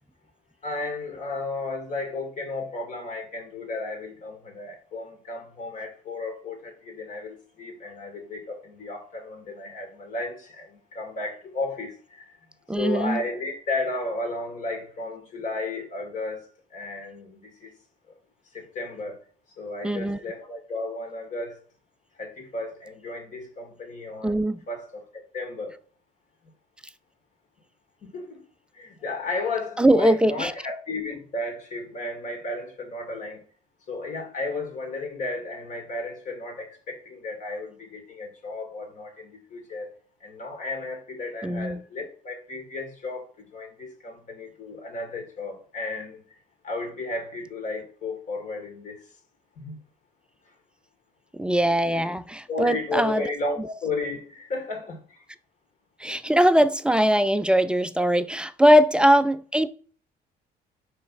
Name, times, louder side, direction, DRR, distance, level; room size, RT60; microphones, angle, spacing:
voice 1, 0.6-12.4 12.8-17.7 18.5-19.2 19.6-21.6 22.2-25.8 28.0-28.4 28.7-33.4 33.9-39.9 40.2-46.2 46.6-49.1 49.6-49.8 52.5-55.2, left 2 dB, 50° left, 2.1 m, -34 dB
voice 2, 12.7-13.2 19.8-20.2 24.2-24.6 29.8-30.5 41.4-41.8 51.3-53.2 56.0-59.7, equal, 5° right, 0.3 m, -21 dB
5.1 x 3.4 x 5.5 m
cardioid pair, 110°, 17 cm